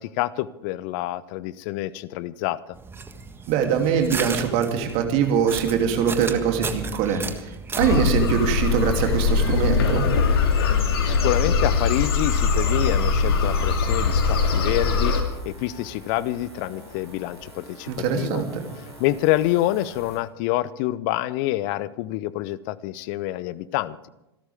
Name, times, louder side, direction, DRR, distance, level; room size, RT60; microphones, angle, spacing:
voice 1, 0.0-2.6 10.7-18.4 19.0-24.0, left 15 dB, 50° left, 19 dB, 0.8 m, -27 dB
sound 1, 2.7-8.1, right 5 dB, 15° right, 1.6 m, -34 dB
voice 2, 3.5-7.5 7.8-10.1 17.9-18.6, right 7 dB, 45° right, 4 dB, 2.9 m, -23 dB
sound 2, 7.8-15.2, left 5 dB, 65° left, 2.7 m, -21 dB
sound 3, 11.7-20.2, equal, 90° right, 6.7 m, -45 dB
27.5 x 12.5 x 3.6 m, 0.96 s
figure-of-eight pair, 90°, 14 cm